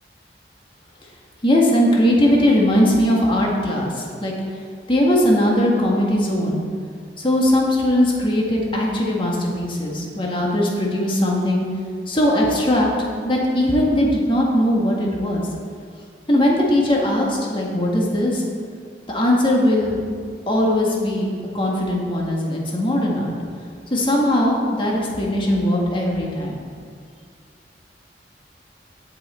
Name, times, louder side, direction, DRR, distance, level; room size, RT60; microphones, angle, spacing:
voice 1, 1.4-4.3 4.9-6.6 7.2-11.6 12.1-12.9 13.2-15.4 16.3-18.4 19.1-20.0 20.5-23.3 23.9-26.6, left 1 dB, 30° left, -2 dB, 1.7 m, -19 dB
17.0 x 5.8 x 4.4 m, 2.1 s
head